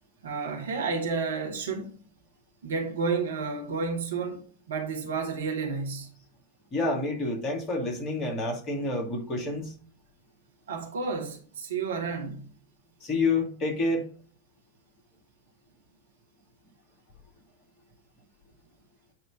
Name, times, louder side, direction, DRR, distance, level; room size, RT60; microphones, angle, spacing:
voice 1, 0.2-1.9 2.6-6.1 10.7-12.5, right 4 dB, 65° right, 1.5 m, -31 dB
voice 2, 6.7-9.8 13.0-14.0, left 2 dB, 30° left, 2.0 m, -28 dB
9.0 x 3.1 x 4.8 m
figure-of-eight pair, 90°, 0 cm